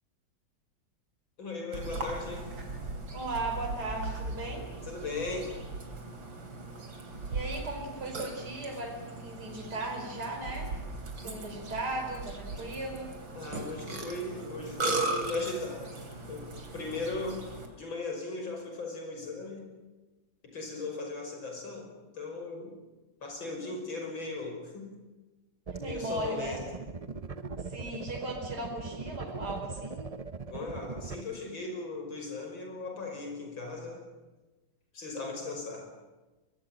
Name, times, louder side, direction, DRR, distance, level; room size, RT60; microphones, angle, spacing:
voice 1, 1.4-2.6 4.8-5.6 11.2-11.4 13.4-16.0 16.3-19.8 20.4-22.8 23.2-25.0 25.8-26.6 30.5-34.1 34.9-35.9, left 3 dB, 80° left, 3 dB, 6.4 m, -38 dB
Burping eructation, 1.7-17.7, right 2 dB, 85° right, 4.0 m, -38 dB
voice 2, 3.1-4.7 7.3-10.7 11.2-13.1 23.6-23.9 25.7-26.6 27.7-30.1, right 2 dB, 55° right, 1 dB, 5.5 m, -37 dB
sound 1, 25.7-31.2, right 4 dB, 35° right, 0.5 m, -40 dB
23.5 x 21.0 x 9.0 m, 1.1 s
omnidirectional pair, 2.1 m